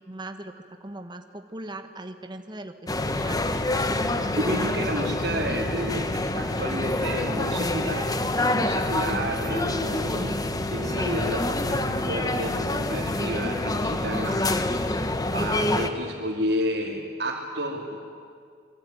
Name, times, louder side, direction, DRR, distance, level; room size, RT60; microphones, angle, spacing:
voice 1, 0.0-3.4, right 1 dB, 25° right, 6 dB, 1.4 m, -39 dB
sound 1, 2.9-15.9, left 2 dB, 20° left, 1.3 m, -26 dB
voice 2, 4.3-14.5 15.3-18.0, equal, 65° right, -5 dB, 3.2 m, -31 dB
27.0 x 22.5 x 9.3 m, 2.2 s
head